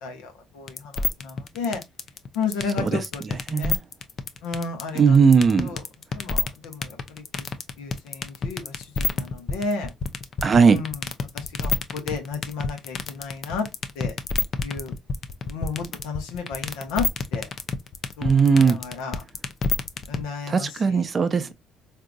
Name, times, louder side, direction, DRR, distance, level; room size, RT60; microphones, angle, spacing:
voice 1, 0.0-1.8 2.3-3.2 3.5-3.8 4.4-5.2 5.6-5.8 6.1-7.5 7.8-9.9 10.7-11.0 11.3-13.7 13.9-14.1 14.6-14.9 15.5-17.5 18.2-19.2 20.1-21.0, left 5 dB, 90° left, 1.0 m, -32 dB
sound 1, 0.7-20.2, left 4 dB, 50° left, 0.5 m, -27 dB
voice 2, 3.3-3.8 4.9-5.8 10.4-10.8 18.2-18.8 20.5-21.5, right 5 dB, 40° right, 0.6 m, -18 dB
3.7 x 2.7 x 2.3 m
supercardioid pair, 75°, 0 cm